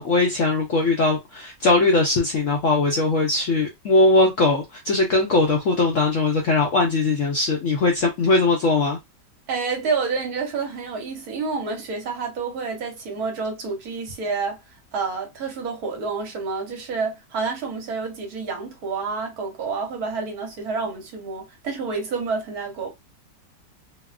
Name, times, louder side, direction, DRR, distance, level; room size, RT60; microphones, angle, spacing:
voice 1, 0.0-9.0, left 2 dB, 70° left, 0.7 m, -20 dB
voice 2, 9.5-14.6 14.9-22.9, right 4 dB, 65° right, 1.1 m, -28 dB
2.9 x 2.1 x 2.3 m
omnidirectional pair, 1.9 m